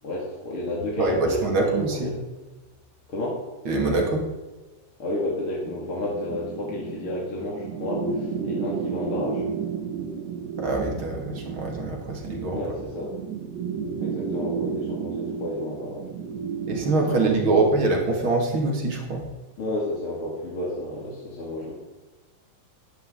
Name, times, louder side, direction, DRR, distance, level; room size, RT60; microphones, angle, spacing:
voice 1, 0.0-2.2 3.1-3.4 5.0-9.7 12.5-13.1 14.0-16.1 17.1-17.6 19.6-21.7, left 1 dB, 45° left, -4 dB, 2.9 m, -31 dB
voice 2, 1.0-2.1 3.6-4.2 10.6-12.8 16.7-19.3, right 3 dB, 40° right, 0 dB, 2.6 m, -24 dB
sound 1, 5.7-18.0, right 6 dB, 80° right, 3.0 m, -32 dB
14.0 x 10.5 x 3.9 m, 1.2 s
omnidirectional pair, 3.9 m